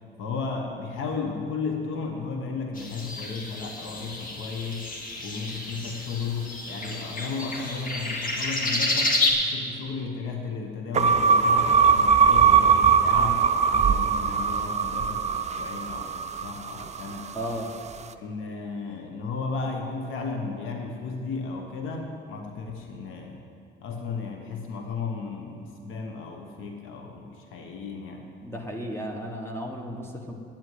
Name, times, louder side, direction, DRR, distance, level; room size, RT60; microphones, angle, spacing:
voice 1, 0.2-4.9 5.2-17.3 18.2-23.4 23.8-28.3, left 4 dB, 85° left, 3 dB, 1.1 m, -34 dB
sound 1, 2.7-9.3, left 2 dB, 45° left, 1.9 m, -30 dB
sound 2, 10.9-17.3, right 6 dB, 35° right, 0.5 m, -21 dB
voice 2, 17.3-17.7 28.4-30.3, equal, 10° left, 1 dB, 1.4 m, -34 dB
8.8 x 8.4 x 9.5 m, 2.6 s
cardioid pair, 90°, 20 cm